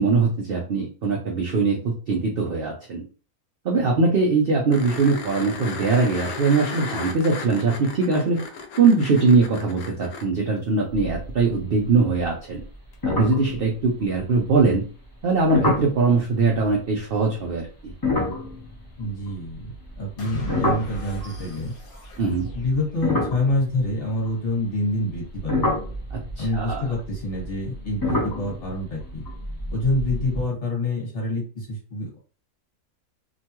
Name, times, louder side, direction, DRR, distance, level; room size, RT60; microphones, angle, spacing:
voice 1, 0.0-3.0 3.6-8.4 8.8-12.6 13.2-14.8 15.2-17.9 22.2-22.5 26.1-26.8, right 4 dB, 75° right, 0 dB, 0.5 m, -21 dB
sound 1, 4.7-10.2 12.9-13.0, left 4 dB, 75° left, 1.0 m, -35 dB
sound 2, 10.9-11.6 11.8-12.2 12.6-12.7 13.0-14.3 15.5-16.0 17.9-21.5 22.2-24.5 25.1-30.4, left 2 dB, 25° left, 0.5 m, -28 dB
voice 2, 19.0-21.7 22.5-25.5 26.4-29.2 29.7-32.2, left 1 dB, 40° left, -4 dB, 1.4 m, -27 dB
sound 3, 20.2-23.5, right 1 dB, 60° left, 1.3 m, -38 dB
2.9 x 2.2 x 2.9 m, 0.38 s
omnidirectional pair, 1.6 m